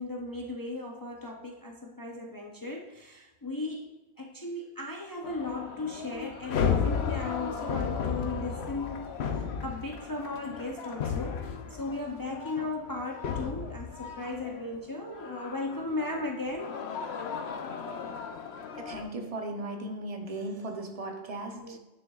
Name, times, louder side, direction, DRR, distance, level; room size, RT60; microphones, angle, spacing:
voice 1, 0.0-9.1 9.6-16.8 21.5-21.8, left 2 dB, 25° left, 0.5 m, -36 dB
sound 1, 5.2-14.8 15.1-19.1, left 6 dB, 90° left, 0.9 m, -34 dB
voice 2, 18.8-21.8, right 2 dB, 40° right, 0.8 m, -37 dB
9.5 x 6.4 x 2.3 m
omnidirectional pair, 1.1 m